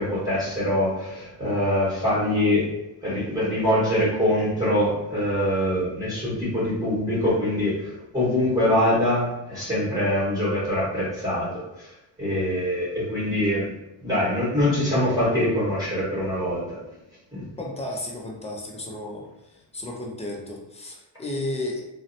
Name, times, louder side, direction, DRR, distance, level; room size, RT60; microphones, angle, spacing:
voice 1, 0.0-2.6 3.0-11.9 12.2-13.7 14.0-16.8 17.3-17.4, left 1 dB, 10° right, -10 dB, 1.2 m, -24 dB
voice 2, 17.6-19.3 19.7-21.8, left 1 dB, 15° left, -1 dB, 0.4 m, -33 dB
2.7 x 2.1 x 2.6 m, 0.89 s
cardioid pair, 100°, 47 cm